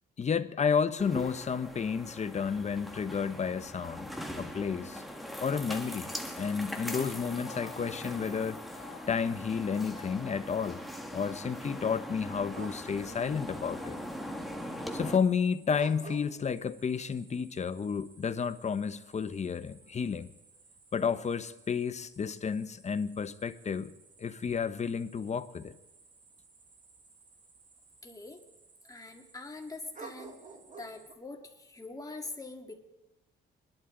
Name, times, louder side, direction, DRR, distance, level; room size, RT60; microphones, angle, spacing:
voice 1, 0.2-4.1 4.4-5.0 5.4-6.1 6.4-8.6 9.1-10.8 11.1-14.0 14.9-20.3 20.9-23.9 24.2-25.7, left 6 dB, 35° left, 0.8 m, -31 dB
sound 1, 1.0-15.2, equal, ahead, 1.7 m, -41 dB
sound 2, 6.9-9.3 9.7-10.9 11.5-12.5, left 7 dB, 65° left, 2.6 m, -53 dB
sound 3, 12.5-31.1, right 4 dB, 40° right, 1.9 m, -54 dB
voice 2, 28.0-28.4 28.8-30.4 30.8-32.8, left 3 dB, 15° left, 2.1 m, -44 dB
23.0 x 11.5 x 3.8 m
cardioid pair, 90°, 20 cm